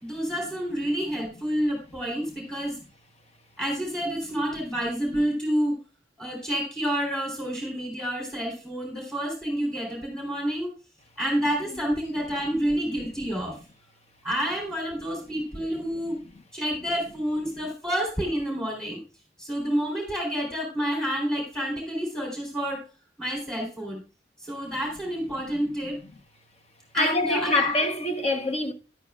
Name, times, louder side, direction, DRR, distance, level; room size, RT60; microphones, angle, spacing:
voice 1, 0.0-2.8 3.6-5.8 6.2-10.7 11.2-13.6 14.2-16.2 16.5-19.0 19.4-22.8 23.2-24.0 24.4-26.0 26.9-27.7, equal, 5° left, 3.5 m, -29 dB
voice 2, 27.0-28.7, left 2 dB, 35° left, 1.0 m, -24 dB
12.5 x 11.0 x 2.4 m
head